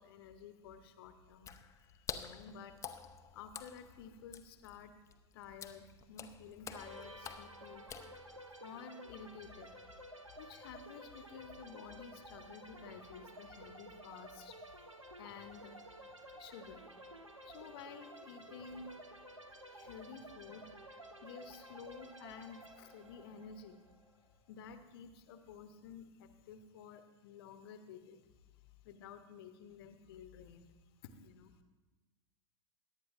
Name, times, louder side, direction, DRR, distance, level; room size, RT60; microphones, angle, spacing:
voice 1, 0.0-4.9 5.3-8.0 8.6-16.0 16.3-17.1 17.4-19.0 19.7-20.7 21.2-23.8 24.5-28.3 28.6-30.7 31.0-31.6, left 6 dB, 50° left, 9 dB, 1.0 m, -52 dB
Water / Splash splatter, 1.3-8.6, left 7 dB, 20° left, 0.6 m, -49 dB
sound 1, 6.7-24.3, right 1 dB, 85° right, 0.9 m, -53 dB
22.0 x 10.0 x 2.5 m, 1.2 s
figure-of-eight pair, 85°, 16 cm